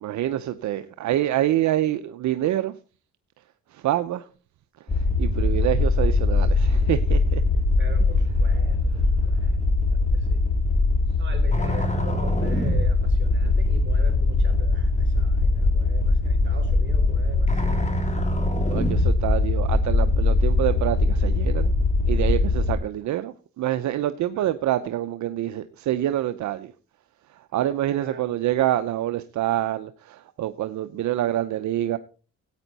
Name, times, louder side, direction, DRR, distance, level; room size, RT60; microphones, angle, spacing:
voice 1, 0.0-2.7 3.7-4.3 4.9-7.4 18.7-21.7 22.1-26.7 27.5-32.0, right 13 dB, 70° right, 11 dB, 0.7 m, -26 dB
sound 1, 4.9-22.7, left 2 dB, 25° left, 3.1 m, -21 dB
voice 2, 7.8-9.5 10.1-10.4 11.2-18.1 24.3-24.5 27.9-28.3, right 2 dB, 40° right, 2 dB, 4.7 m, -42 dB
15.0 x 9.0 x 4.1 m, 0.38 s
cardioid pair, 90°, 30 cm